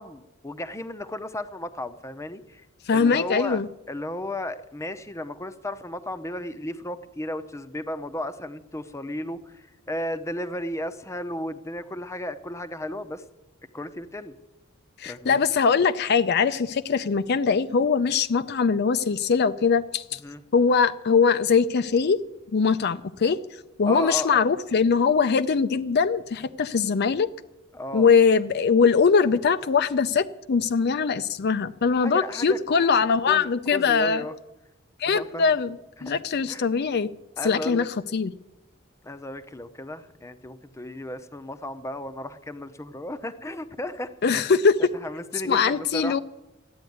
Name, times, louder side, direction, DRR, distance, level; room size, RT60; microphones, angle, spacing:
voice 1, 0.0-2.6 2.9-3.6 3.9-13.2 13.7-14.4 15.0-15.4 20.2-20.4 23.9-24.4 27.7-28.1 32.0-32.9 33.3-34.3 35.1-35.5 36.0-36.2 36.5-36.6 37.4-37.9 39.0-44.1 44.9-46.2, left 1 dB, 15° left, 11 dB, 0.7 m, -34 dB
voice 2, 2.9-3.7 15.0-20.2 20.5-22.2 22.5-23.4 23.8-27.3 27.9-34.2 35.0-35.8 36.0-37.1 37.4-38.3 44.2-44.9 45.5-46.2, left 5 dB, 55° left, 11 dB, 0.5 m, -22 dB
13.5 x 9.5 x 9.4 m, 0.96 s
head